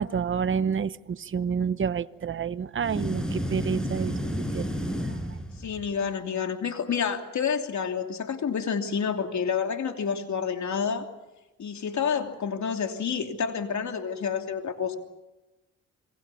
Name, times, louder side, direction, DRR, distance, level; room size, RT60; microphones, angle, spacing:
voice 1, 0.0-4.1 4.5-4.7, right 6 dB, 40° right, 15 dB, 0.9 m, -28 dB
sound 1, 2.8-6.0, equal, ahead, 6.5 m, -31 dB
voice 2, 5.6-11.1 11.6-14.9, left 6 dB, 65° left, 5 dB, 3.1 m, -29 dB
27.0 x 22.5 x 7.1 m, 1.0 s
cardioid pair, 65°, 31 cm